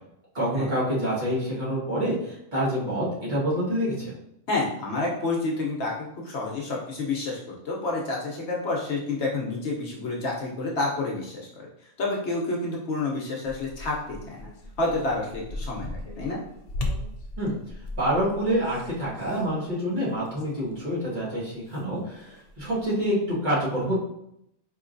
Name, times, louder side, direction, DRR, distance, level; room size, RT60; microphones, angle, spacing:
voice 1, 0.3-4.1 17.4-17.6 18.0-24.0, equal, 35° right, -8 dB, 1.4 m, -27 dB
voice 2, 4.5-7.4 7.6-11.7 12.0-14.5 14.8-16.4, left 2 dB, 60° left, -2 dB, 1.0 m, -29 dB
sound 1, 13.4-21.1 21.3-22.9, left 1 dB, 80° left, 0.3 m, -38 dB
4.4 x 3.1 x 2.5 m, 0.78 s
omnidirectional pair, 1.4 m